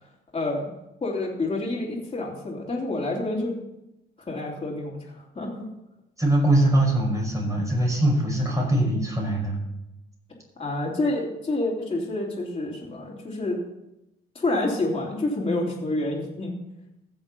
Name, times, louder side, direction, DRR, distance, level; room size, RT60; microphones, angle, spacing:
voice 1, 0.3-0.7 1.0-3.6 4.2-5.7 10.6-13.6 14.4-16.6, left 2 dB, 25° left, -5 dB, 3.5 m, -28 dB
voice 2, 6.2-9.6, right 1 dB, 15° right, -1 dB, 5.5 m, -22 dB
15.0 x 7.2 x 5.5 m, 0.90 s
cardioid pair, 100°, 21 cm